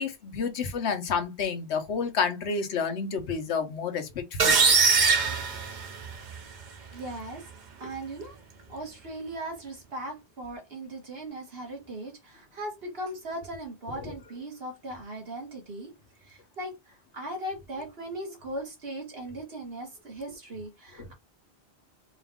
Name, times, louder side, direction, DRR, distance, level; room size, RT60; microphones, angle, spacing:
voice 1, 0.0-4.8 14.0-14.1, left 5 dB, 85° left, 1.1 m, -30 dB
sound 1, 4.4-6.3, right 5 dB, 50° right, 0.7 m, -22 dB
voice 2, 6.9-7.5 7.8-8.4 8.7-15.9 16.2-21.1, right 1 dB, 65° right, 1.6 m, -38 dB
4.4 x 2.4 x 3.5 m
omnidirectional pair, 1.1 m